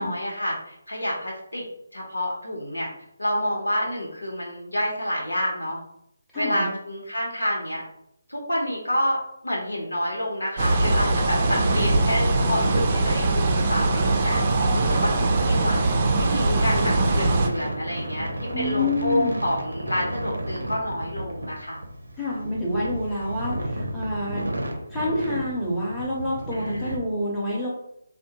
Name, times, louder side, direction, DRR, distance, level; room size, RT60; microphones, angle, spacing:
voice 1, 0.0-1.6 1.9-2.9 3.2-5.8 6.3-7.8 8.3-15.8 16.1-18.3 18.6-21.8 26.5-27.0, left 1 dB, 85° left, -2 dB, 0.9 m, -28 dB
voice 2, 6.3-6.7 18.5-19.4 22.2-24.5 24.9-27.7, left 1 dB, ahead, -9 dB, 0.7 m, -28 dB
sound 1, 10.6-17.5, right 2 dB, 35° right, 0.4 m, -22 dB
sound 2, 11.4-27.0, right 1 dB, 85° right, 0.6 m, -32 dB
3.5 x 2.1 x 2.8 m, 0.76 s
figure-of-eight pair, 150°, 0 cm